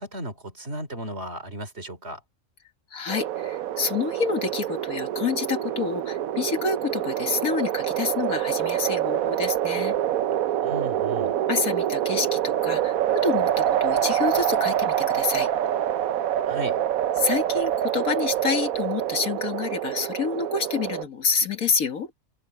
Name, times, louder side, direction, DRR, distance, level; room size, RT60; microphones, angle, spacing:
voice 1, 0.0-2.2 10.6-11.3 16.4-16.8, right 1 dB, 50° right, 3.8 m, -35 dB
voice 2, 2.9-9.9 11.5-15.5 17.2-22.1, left 5 dB, 85° left, 2.1 m, -28 dB
sound 1, 3.1-21.0, right 11 dB, 85° right, 1.2 m, -26 dB
omnidirectional pair, 1.4 m